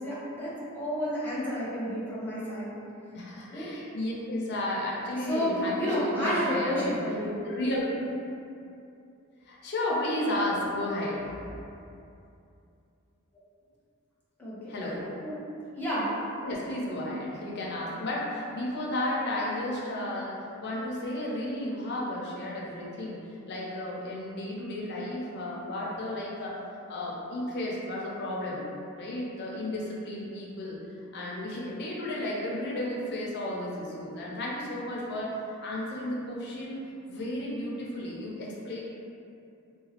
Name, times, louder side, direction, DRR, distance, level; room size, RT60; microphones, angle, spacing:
voice 1, 0.0-2.8 3.5-3.7 5.2-7.5 14.4-14.7 15.2-15.3 15.7-16.1, equal, 10° left, -9 dB, 0.7 m, -30 dB
voice 2, 3.1-7.0 7.4-7.9 9.5-11.4 14.7-15.2 16.4-23.2 23.5-26.6 26.9-28.6 28.9-30.8 31.1-36.8 37.1-38.8, left 1 dB, 55° left, -4 dB, 0.5 m, -33 dB
2.9 x 2.2 x 2.9 m, 2.6 s
head